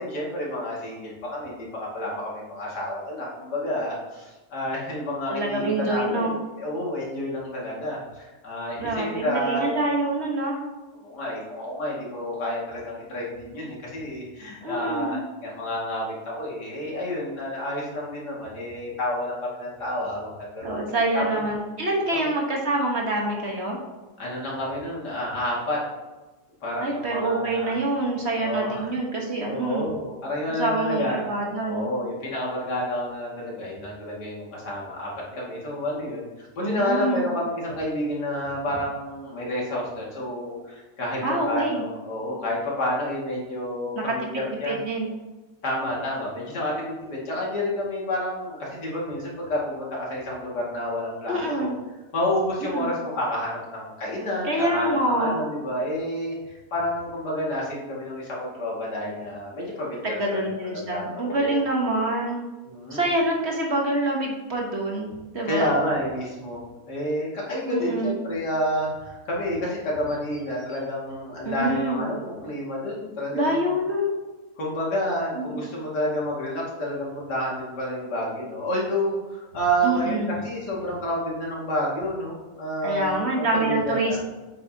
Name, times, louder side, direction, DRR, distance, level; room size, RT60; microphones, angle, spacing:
voice 1, 0.0-9.8 11.0-20.8 21.1-21.2 22.1-22.3 24.2-25.8 26.6-27.7 28.4-28.9 29.5-31.3 31.7-44.8 45.6-51.7 52.1-60.5 60.7-61.6 62.7-63.1 65.5-66.6 66.9-73.6 74.6-84.2, equal, 85° left, -4 dB, 2.7 m, -29 dB
voice 2, 5.3-6.4 8.8-10.6 14.6-15.2 20.6-23.8 26.8-29.9 30.6-31.9 36.6-37.3 41.2-41.8 44.0-44.1 44.7-45.1 51.3-51.8 52.6-53.0 54.4-55.4 60.0-62.4 62.9-65.7 67.7-68.2 71.4-72.0 73.3-74.1 75.3-75.7 79.8-80.4 82.8-84.2, right 1 dB, 45° right, -1 dB, 1.4 m, -26 dB
8.1 x 7.5 x 2.8 m, 1.1 s
omnidirectional pair, 1.7 m